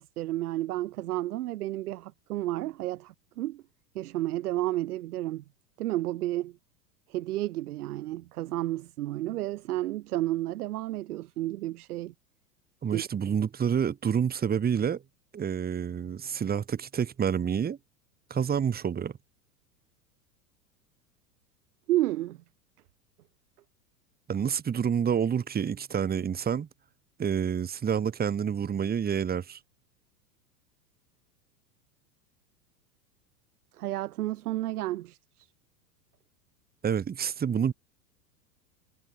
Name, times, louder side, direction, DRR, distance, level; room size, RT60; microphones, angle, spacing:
voice 1, 0.0-3.6 3.9-5.4 5.8-6.5 7.1-12.1 12.9-13.0 21.9-22.4 33.7-35.5, right 15 dB, 60° right, 2.9 m, -31 dB
voice 2, 12.8-15.0 15.3-17.8 18.3-19.1 24.3-26.7 27.2-29.6 36.8-37.7, right 7 dB, 20° right, 1.9 m, -28 dB
figure-of-eight pair, 95°, 50 cm